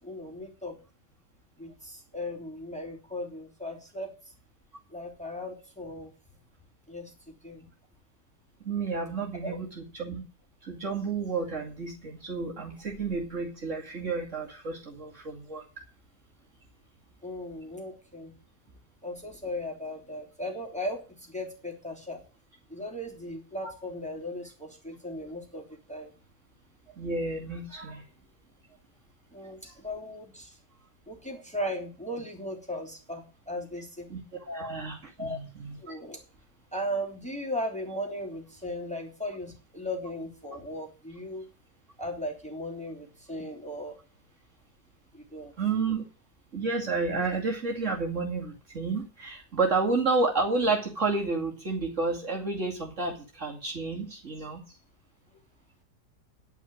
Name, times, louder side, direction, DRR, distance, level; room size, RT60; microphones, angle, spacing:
voice 1, 0.0-0.8 1.6-4.1 4.9-6.1 6.9-7.1 7.4-7.7 9.4-9.6 17.2-18.3 19.0-21.0 21.3-22.2 22.7-26.1 29.3-30.6 31.1-34.1 35.2-35.4 35.8-36.2 36.7-41.4 42.0-43.9 45.1-45.5, left 1 dB, 5° left, 0 dB, 2.9 m, -37 dB
voice 2, 8.6-10.2 10.6-15.6 23.6-23.7 27.0-28.0 29.6-29.7 34.1-35.9 45.6-46.0 46.5-54.6, right 3 dB, 45° right, -1 dB, 2.6 m, -31 dB
10.5 x 5.8 x 8.7 m, 0.36 s
omnidirectional pair, 1.9 m